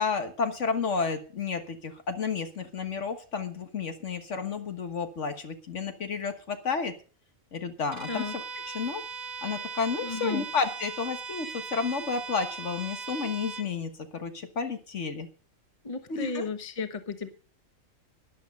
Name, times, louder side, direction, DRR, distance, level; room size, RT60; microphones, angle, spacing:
voice 1, 0.0-6.9 7.5-9.0 9.4-15.3 16.1-16.5, left 5 dB, 60° left, 7 dB, 1.7 m, -31 dB
Bowed string instrument, 7.9-13.7, right 4 dB, 85° right, 1.8 m, -39 dB
voice 2, 10.0-10.4 15.8-17.3, left 4 dB, 25° left, 9 dB, 1.2 m, -34 dB
12.5 x 10.5 x 5.3 m, 0.38 s
omnidirectional pair, 1.4 m